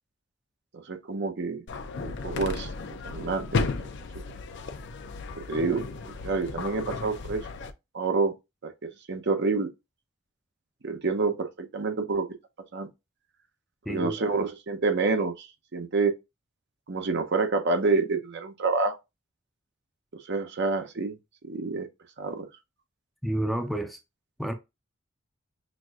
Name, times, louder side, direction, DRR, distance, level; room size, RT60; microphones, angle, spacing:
voice 1, 0.9-1.6 2.0-2.7 3.0-3.6 5.5-5.8 6.2-7.4 7.9-8.3 8.6-8.7 9.1-9.7 10.8-12.3 12.7-12.9 13.9-16.1 16.9-19.0 20.1-21.1 21.4-21.9 22.2-22.5, right 4 dB, 60° right, 0.7 m, -27 dB
sound 1, 1.7-7.7, left 3 dB, 60° left, 0.5 m, -34 dB
voice 2, 13.9-14.2 23.2-24.0 24.4-24.5, right 1 dB, ahead, 0.5 m, -29 dB
6.0 x 2.6 x 2.4 m
head